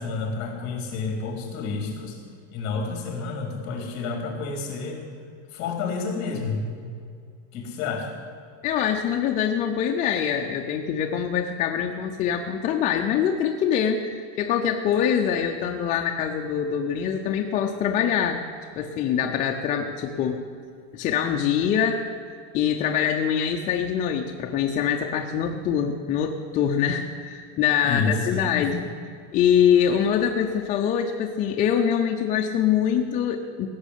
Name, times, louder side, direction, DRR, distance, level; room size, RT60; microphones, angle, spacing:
voice 1, 0.0-2.2 2.5-5.0 5.5-6.9 7.5-8.1 27.8-28.9, left 4 dB, 40° left, 2 dB, 3.9 m, -30 dB
voice 2, 8.6-18.4 18.8-20.4 20.9-22.0 22.5-28.8 29.3-33.7, left 8 dB, 20° left, 2 dB, 0.4 m, -24 dB
17.0 x 7.0 x 9.9 m, 2.2 s
cardioid pair, 175°, 41 cm